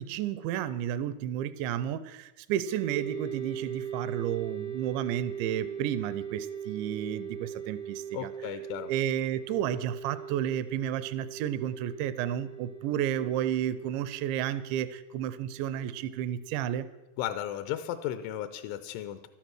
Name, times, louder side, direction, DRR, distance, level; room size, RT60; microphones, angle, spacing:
voice 1, 0.0-8.3 8.9-16.9, right 10 dB, 80° right, 14 dB, 2.8 m, -32 dB
sound 1, 2.6-16.5, right 8 dB, 65° right, 0.7 m, -40 dB
voice 2, 8.1-8.9 17.2-19.3, left 11 dB, 85° left, 11 dB, 3.1 m, -35 dB
12.5 x 12.5 x 6.2 m, 1.0 s
omnidirectional pair, 5.4 m